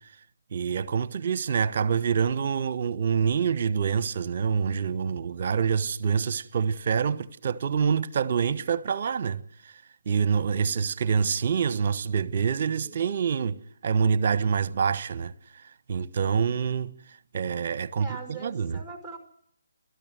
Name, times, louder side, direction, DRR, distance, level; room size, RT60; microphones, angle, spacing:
voice 1, 0.5-9.4 10.1-13.6 13.8-15.3 15.9-16.9 17.3-18.8, right 6 dB, 45° right, 1.2 m, -26 dB
voice 2, 17.9-19.2, right 4 dB, ahead, 5.4 m, -41 dB
29.5 x 13.0 x 7.7 m
figure-of-eight pair, 145°, 0 cm